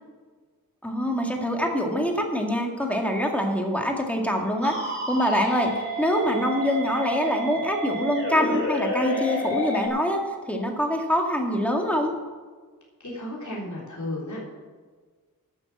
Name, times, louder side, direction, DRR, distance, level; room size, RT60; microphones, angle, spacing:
voice 1, 0.8-4.8 5.1-10.2 10.5-12.1, equal, 5° left, 1 dB, 2.0 m, -25 dB
sound 1, 4.6-9.9, equal, 35° left, 2.8 m, -29 dB
voice 2, 13.0-14.4, left 1 dB, 55° left, -5 dB, 3.7 m, -33 dB
12.0 x 7.0 x 7.6 m, 1.5 s
wide cardioid pair, 85°, 36 cm